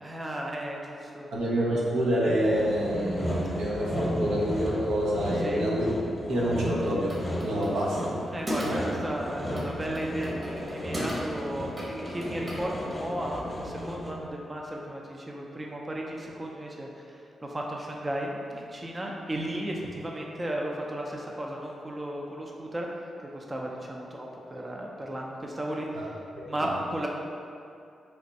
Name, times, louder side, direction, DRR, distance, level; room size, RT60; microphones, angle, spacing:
voice 1, 0.0-1.3 5.4-5.6 8.3-22.9 23.2-26.1 26.5-27.1, right 1 dB, 25° right, -1 dB, 0.5 m, -35 dB
voice 2, 1.3-5.9 6.3-8.2 8.6-8.8 26.3-26.7, equal, 80° right, -6 dB, 0.7 m, -27 dB
Sawing, 2.3-14.3, equal, 25° left, 0.8 m, -34 dB
sound 1, 6.7-13.0, equal, 45° right, 1.1 m, -38 dB
3.3 x 2.5 x 4.0 m, 2.5 s
supercardioid pair, 50°, 0 cm